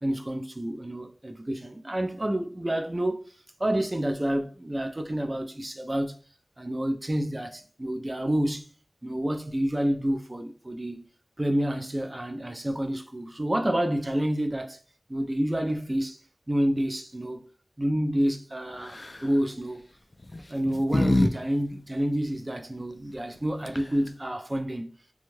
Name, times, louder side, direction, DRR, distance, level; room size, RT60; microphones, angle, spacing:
voice 1, 0.0-3.2 3.6-6.2 6.6-8.7 9.0-11.0 11.4-14.8 15.1-16.2 16.5-17.5 17.8-19.8 20.5-24.9, right 1 dB, 30° right, 0.4 m, -28 dB
sound 1, 18.8-19.3 20.2-21.3 21.6-21.7 23.4-23.5 23.6-24.1, left 1 dB, 50° left, 0.3 m, -25 dB
2.6 x 2.3 x 3.0 m
wide cardioid pair, 55°, 0 cm